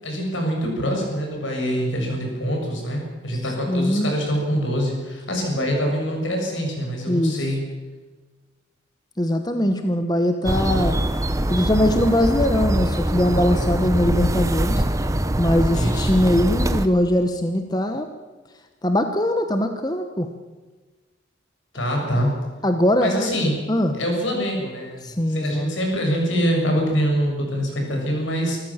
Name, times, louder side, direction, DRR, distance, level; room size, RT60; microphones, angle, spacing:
voice 1, 0.0-7.6 15.7-16.1 21.7-22.3 23.0-23.6 23.9-28.6, equal, 80° left, 1 dB, 6.9 m, -24 dB
voice 2, 3.7-4.1 7.1-7.5 9.2-11.0 11.5-14.8 15.4-18.1 18.8-20.3 22.6-23.3 23.7-24.0 25.0-25.7, left 1 dB, 20° left, 7 dB, 1.0 m, -21 dB
sound 1, 10.4-16.9, right 1 dB, 15° right, 0.8 m, -23 dB
26.0 x 14.0 x 7.3 m, 1.3 s
head